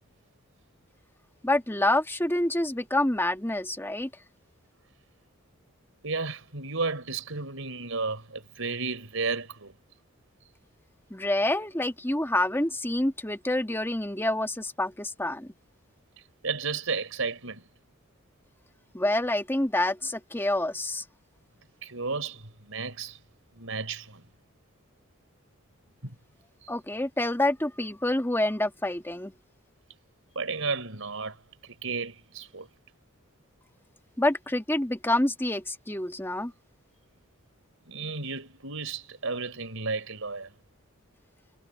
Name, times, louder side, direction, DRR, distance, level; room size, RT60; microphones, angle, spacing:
voice 1, 1.4-4.1 11.1-15.5 18.9-21.0 26.7-29.3 34.2-36.5, left 1 dB, 10° left, 1.8 m, -27 dB
voice 2, 6.0-9.7 16.2-17.6 20.0-20.1 21.8-23.2 23.5-24.2 26.0-26.1 26.6-26.7 30.3-31.4 31.6-32.7 37.9-40.5, right 4 dB, 70° right, 4.8 m, -33 dB
head